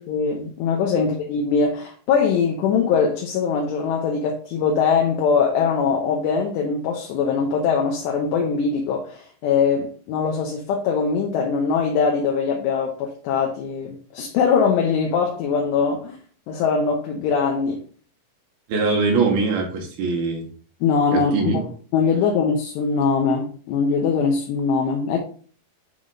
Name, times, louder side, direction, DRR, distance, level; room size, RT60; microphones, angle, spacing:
voice 1, 0.0-16.2 16.5-17.8 20.8-21.7 21.9-25.2, left 5 dB, 75° left, 2.8 m, -22 dB
voice 2, 18.7-20.5 21.1-21.6, right 4 dB, 70° right, 2.4 m, -22 dB
9.4 x 3.6 x 3.7 m
omnidirectional pair, 5.6 m